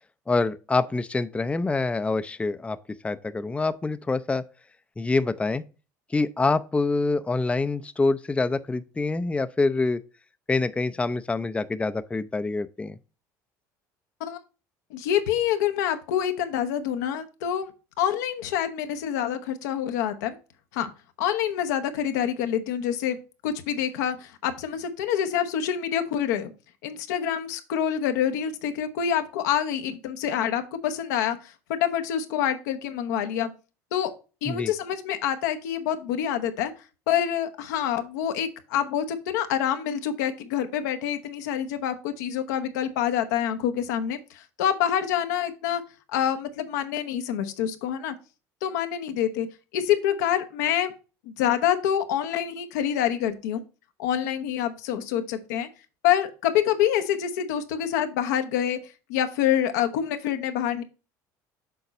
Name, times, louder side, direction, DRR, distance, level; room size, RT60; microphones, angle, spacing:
voice 1, 0.3-2.8 3.0-4.4 5.0-5.6 6.1-10.0 10.5-13.0 34.5-34.7, left 3 dB, 15° left, 0.5 m, -26 dB
voice 2, 14.9-17.7 18.0-20.4 20.7-20.9 21.2-23.2 23.4-26.5 26.8-33.5 33.9-34.1 34.4-36.7 37.1-45.8 46.1-48.1 48.6-49.5 49.7-50.9 51.3-53.6 54.0-55.7 56.0-58.8 59.1-60.8, left 10 dB, 85° left, 0.8 m, -26 dB
6.8 x 3.9 x 4.1 m
supercardioid pair, 80°, 9 cm